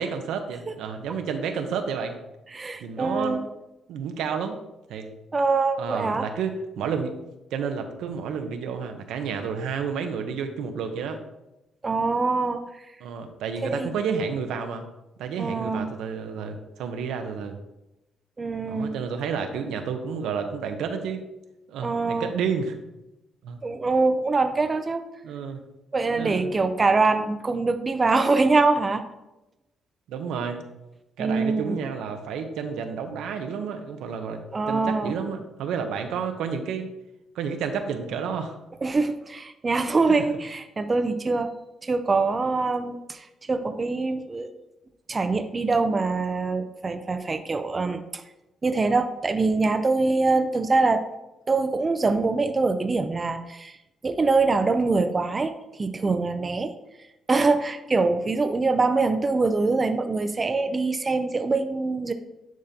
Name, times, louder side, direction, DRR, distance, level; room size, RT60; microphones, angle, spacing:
voice 1, 0.0-2.2 2.8-3.4 3.9-4.6 4.9-5.1 5.8-7.1 7.5-11.2 13.0-14.8 15.2-17.6 18.6-21.2 21.7-22.8 23.4-23.6 25.2-25.6 26.1-26.5 30.1-30.6 31.2-36.9 37.3-38.6, right 6 dB, 85° right, 6 dB, 0.7 m, -30 dB
voice 2, 2.5-3.4 5.3-6.3 11.8-12.6 13.6-13.9 15.4-15.9 18.4-18.9 21.8-22.3 23.6-25.0 25.9-29.0 31.2-31.8 34.5-35.1 38.8-41.5 41.8-44.5 45.1-48.2 48.6-51.0 51.5-53.8 54.0-55.5 55.8-56.7 57.3-62.1, right 3 dB, 30° right, 8 dB, 0.5 m, -24 dB
10.5 x 3.7 x 2.8 m, 0.95 s
cardioid pair, 90°, 0 cm